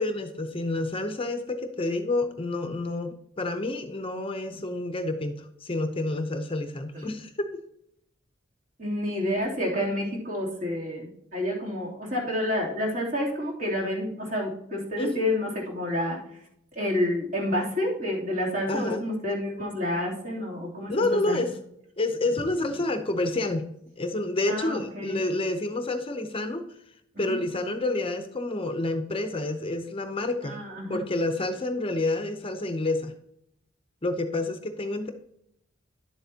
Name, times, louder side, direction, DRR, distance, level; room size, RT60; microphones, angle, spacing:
voice 1, 0.0-7.5 15.0-15.3 18.7-19.0 20.9-21.5 22.0-23.7 24.0-26.6 27.2-30.6 30.9-33.1 34.0-35.1, left 2 dB, 30° left, 7 dB, 0.7 m, -29 dB
voice 2, 8.8-16.2 16.7-21.4 24.5-25.2 27.1-27.4 30.4-31.0, left 1 dB, 45° right, -3 dB, 3.1 m, -29 dB
11.0 x 7.8 x 2.8 m, 0.75 s
head